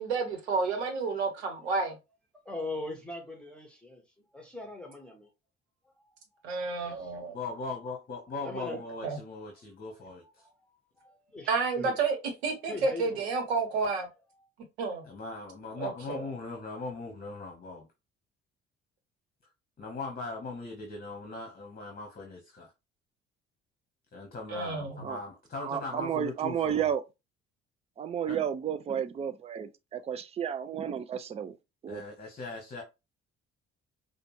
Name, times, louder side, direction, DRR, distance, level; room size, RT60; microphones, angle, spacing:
voice 1, 0.0-2.0 6.4-7.4 9.0-9.2 11.5-12.2 12.4-14.1 14.8-15.0 15.8-16.2 24.5-25.0, right 4 dB, 70° right, 1.0 m, -30 dB
voice 2, 2.4-4.0 4.3-5.3 5.8-5.9 6.8-7.1 8.4-8.8 10.4-10.7 11.0-11.9 12.6-13.3 14.3-14.5, left 2 dB, 5° left, 1.2 m, -41 dB
voice 3, 7.3-10.2 15.0-17.9 19.8-22.7 24.1-26.9 28.3-28.4 31.9-32.8, left 3 dB, 30° left, 1.2 m, -39 dB
voice 4, 25.6-27.0 28.0-31.6 31.8-32.0, right 9 dB, 20° right, 0.4 m, -32 dB
4.9 x 2.2 x 3.1 m
figure-of-eight pair, 50°, 33 cm